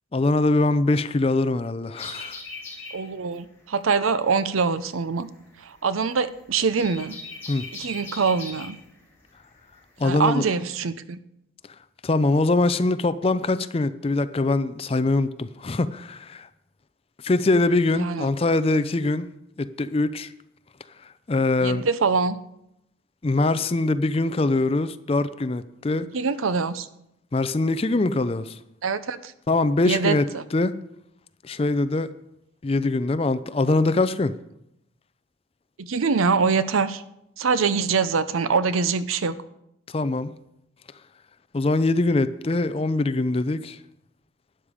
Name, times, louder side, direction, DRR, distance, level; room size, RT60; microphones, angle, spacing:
voice 1, 0.1-2.4 7.5-7.7 10.0-10.4 12.0-16.5 17.2-19.3 19.6-20.3 21.3-21.9 23.2-26.1 27.3-28.6 29.5-30.3 30.5-30.8 31.4-32.1 32.6-34.3 39.9-40.3 41.5-43.8, left 2 dB, 30° left, 0.4 m, -23 dB
sound 1, 1.9-10.2, left 3 dB, 10° left, 4.6 m, -40 dB
voice 2, 2.9-5.3 5.6-7.2 7.7-8.8 10.0-11.2 18.0-18.3 21.6-22.4 26.1-26.9 28.8-29.3 29.8-30.4 35.8-37.0 37.4-39.3, right 5 dB, 90° right, 0.6 m, -24 dB
12.0 x 10.0 x 5.0 m
head